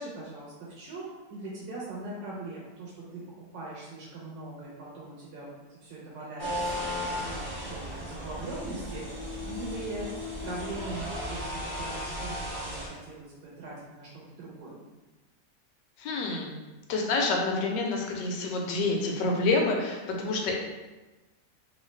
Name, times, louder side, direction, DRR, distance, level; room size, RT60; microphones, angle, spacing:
voice 1, 0.0-3.2 3.5-10.1 10.4-14.9, right 2 dB, 85° right, -5 dB, 1.3 m, -41 dB
sound 1, 4.6-5.6 7.6-12.7 13.4-13.6 14.4-14.5, left 9 dB, 55° left, 0.8 m, -45 dB
sound 2, 6.4-12.9, equal, 10° right, 0.5 m, -36 dB
voice 2, 16.0-16.6 16.9-20.6, left 3 dB, 85° left, 1 dB, 1.2 m, -28 dB
3.1 x 2.8 x 3.1 m, 1.2 s
omnidirectional pair, 1.9 m